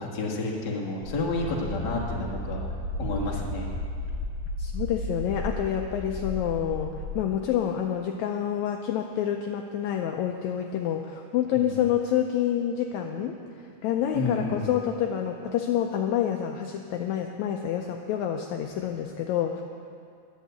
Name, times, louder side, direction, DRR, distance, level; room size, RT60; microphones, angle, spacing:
voice 1, 0.0-2.6 3.0-3.7 11.5-11.8 14.1-14.7, left 3 dB, 40° left, -2 dB, 1.7 m, -30 dB
sound 1, 1.0-7.2, left 1 dB, 65° right, 3.2 m, -34 dB
voice 2, 4.6-13.4 13.8-19.6, left 10 dB, 80° left, 3 dB, 1.8 m, -28 dB
11.5 x 8.2 x 8.0 m, 2.4 s
omnidirectional pair, 3.7 m